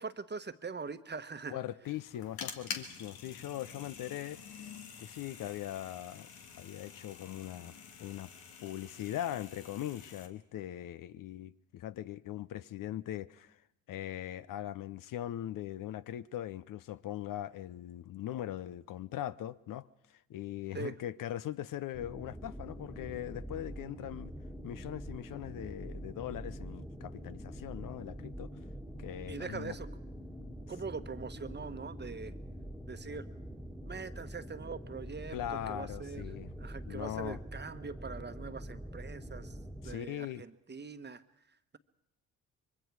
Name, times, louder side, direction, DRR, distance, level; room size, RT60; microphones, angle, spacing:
voice 1, 0.0-1.6 20.7-20.9 29.3-29.9 30.7-32.3 32.9-33.3 33.8-35.4 35.7-36.2 36.6-39.6 39.8-41.2, right 4 dB, 30° right, 1.2 m, -42 dB
voice 2, 1.5-4.7 5.0-6.3 6.6-7.7 8.0-8.3 8.6-13.6 13.9-24.3 24.6-28.5 29.0-29.7 35.3-36.5 36.9-37.4 39.8-40.4, left 12 dB, 60° left, 0.7 m, -40 dB
sound 1, 1.8-10.3, left 6 dB, 80° left, 1.7 m, -47 dB
sound 2, 21.9-39.9, equal, ahead, 1.7 m, -45 dB
25.0 x 22.5 x 4.7 m
hypercardioid pair, 55°, 37 cm